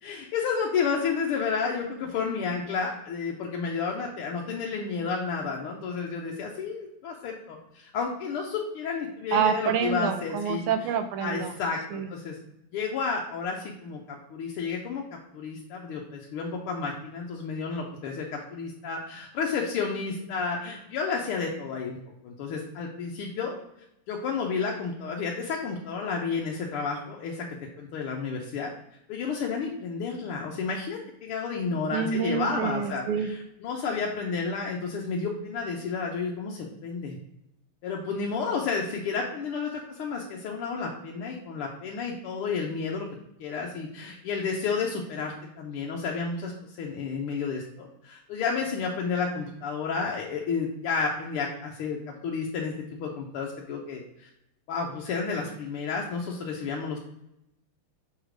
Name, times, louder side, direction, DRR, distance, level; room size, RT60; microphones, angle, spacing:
voice 1, 0.0-10.7 11.2-12.4 12.7-22.0 22.2-23.6 24.1-27.4 27.8-28.7 29.1-37.2 37.8-43.1 43.4-54.3 54.7-57.0, left 5 dB, 80° left, -1 dB, 1.7 m, -31 dB
voice 2, 9.3-11.5 11.9-12.1 31.9-33.3, right 7 dB, 80° right, 8 dB, 1.5 m, -27 dB
6.5 x 3.2 x 5.0 m, 0.80 s
omnidirectional pair, 2.4 m